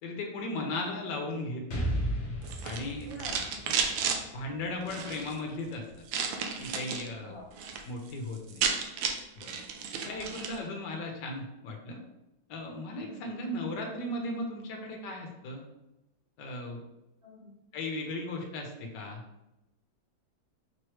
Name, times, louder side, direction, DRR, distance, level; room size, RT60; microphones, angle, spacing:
voice 1, 0.0-2.0 2.6-3.1 4.3-6.1 6.6-7.4 7.8-8.6 9.4-9.5 10.0-12.0 12.5-15.6 16.4-16.8 17.7-19.2, left 2 dB, 70° left, 1 dB, 1.4 m, -36 dB
Explosion, 1.7-5.5, equal, 45° left, 1.1 m, -35 dB
sound 1, 2.4-4.2 4.8-5.3 6.1-7.1 7.4-7.8 8.1-8.2 8.4-10.6, right 6 dB, 90° right, 1.4 m, -32 dB
voice 2, 3.0-3.9 7.2-7.5 10.0-10.2 13.1-13.4 17.2-17.5, left 1 dB, 35° right, -6 dB, 1.1 m, -47 dB
5.3 x 3.1 x 3.1 m, 0.93 s
omnidirectional pair, 2.1 m